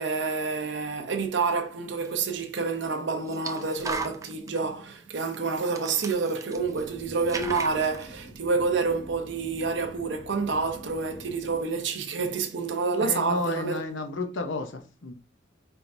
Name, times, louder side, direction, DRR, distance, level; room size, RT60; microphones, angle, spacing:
voice 1, 0.0-13.8, right 4 dB, 60° right, 0.6 m, -28 dB
sound 1, 2.0-2.1 3.3-4.6 5.3-5.4 5.6-6.9 7.2-8.1, right 4 dB, 15° right, 0.3 m, -36 dB
sound 2, 6.5-11.6, equal, 25° left, 1.0 m, -47 dB
voice 2, 13.0-15.1, left 3 dB, 70° left, 0.7 m, -32 dB
4.4 x 3.4 x 2.6 m
head